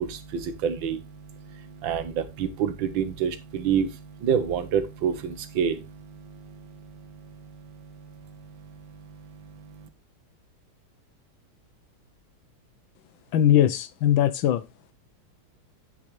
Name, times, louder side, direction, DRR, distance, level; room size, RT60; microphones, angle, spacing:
voice 1, 0.0-9.9, right 7 dB, 65° right, 1.7 m, -30 dB
voice 2, 13.3-14.6, left 11 dB, 75° left, 1.4 m, -20 dB
9.2 x 7.5 x 3.1 m
omnidirectional pair, 2.4 m